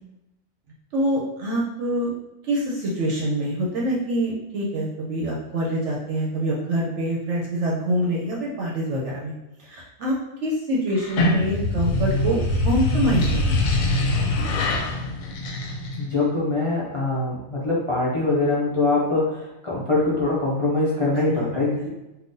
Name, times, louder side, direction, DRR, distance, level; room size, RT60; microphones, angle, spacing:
voice 1, 0.9-2.1 2.5-9.3 9.6-10.2 10.4-13.6 21.2-21.9, right 1 dB, 65° right, -3 dB, 0.9 m, -25 dB
sound 1, 10.9-16.2, left 2 dB, 80° left, 1.0 m, -23 dB
voice 2, 15.9-21.9, left 2 dB, 40° left, -7 dB, 0.4 m, -23 dB
3.6 x 2.4 x 2.6 m, 1.0 s
omnidirectional pair, 1.4 m